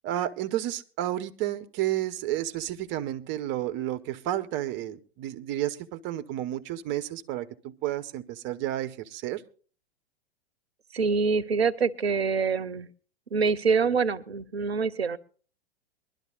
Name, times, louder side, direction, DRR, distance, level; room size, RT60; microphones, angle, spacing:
voice 1, 0.0-9.4, right 13 dB, 40° right, 12 dB, 1.1 m, -31 dB
voice 2, 10.9-12.9 13.3-15.2, right 5 dB, 85° right, 17 dB, 0.8 m, -25 dB
22.5 x 12.0 x 2.5 m, 0.40 s
figure-of-eight pair, 100°, 31 cm